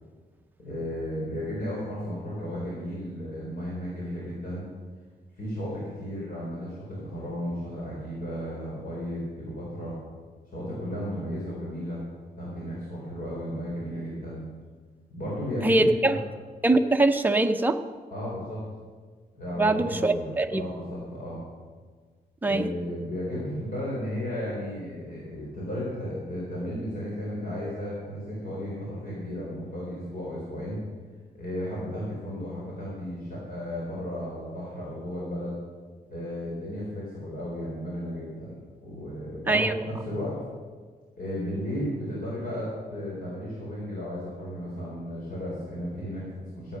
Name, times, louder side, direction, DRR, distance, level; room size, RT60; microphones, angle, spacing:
voice 1, 0.6-4.7 5.4-10.0 10.5-12.0 12.4-14.4 15.1-16.2 18.1-18.6 19.3-21.5 22.4-30.8 31.3-35.6 36.1-40.4 41.2-46.8, equal, 60° left, -6 dB, 4.1 m, -34 dB
voice 2, 15.6-16.2 16.6-17.8 19.6-20.6 22.4-22.7 39.5-39.7, right 2 dB, 10° right, 5 dB, 0.6 m, -22 dB
14.0 x 8.8 x 6.4 m, 1.5 s
wide cardioid pair, 155°, 16 cm